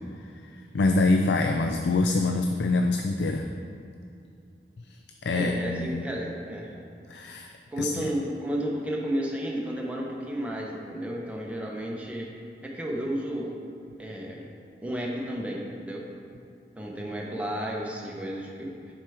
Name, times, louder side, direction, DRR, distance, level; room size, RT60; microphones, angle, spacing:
voice 1, 0.2-3.5 5.2-6.0 7.1-7.5 7.8-8.0, left 3 dB, 75° left, 4 dB, 0.4 m, -25 dB
voice 2, 5.3-6.7 7.7-12.3 12.6-13.6 14.0-14.4 14.8-16.0 16.8-18.7, equal, 5° right, -2 dB, 0.8 m, -32 dB
7.4 x 4.6 x 4.9 m, 2.5 s
head